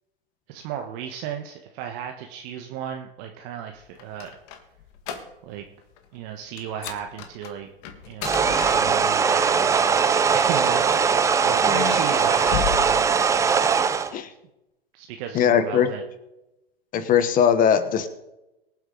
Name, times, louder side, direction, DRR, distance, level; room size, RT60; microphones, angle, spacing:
voice 1, 0.5-4.3 5.4-5.6 6.1-7.7 8.0-10.0 10.3-13.2 14.9-16.0, right 9 dB, 45° right, 4 dB, 1.4 m, -34 dB
sound 1, 3.8-5.7 5.9-6.2 6.6-9.4 10.2-11.1 11.7-14.0, left 9 dB, 45° left, 1.9 m, -35 dB
sound 2, 8.2-14.1, right 6 dB, 10° right, 0.5 m, -20 dB
voice 2, 11.6-11.9 14.1-14.3 15.3-15.9 16.9-18.1, left 8 dB, 25° left, 11 dB, 1.2 m, -20 dB
23.5 x 7.9 x 4.0 m, 0.94 s
hypercardioid pair, 115°, 30 cm